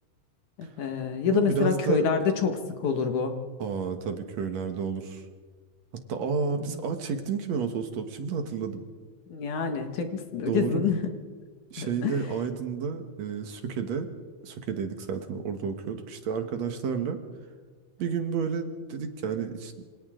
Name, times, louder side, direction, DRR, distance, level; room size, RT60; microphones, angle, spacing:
voice 1, 0.6-3.4 6.5-6.7 9.3-11.1 11.8-12.2, left 6 dB, 75° left, 5 dB, 3.2 m, -27 dB
voice 2, 1.3-2.1 3.6-5.2 5.9-8.8 10.5-10.8 11.7-14.1 14.4-17.2 18.0-19.8, right 6 dB, 65° right, 6 dB, 2.6 m, -31 dB
27.0 x 26.0 x 3.9 m, 1.5 s
omnidirectional pair, 3.5 m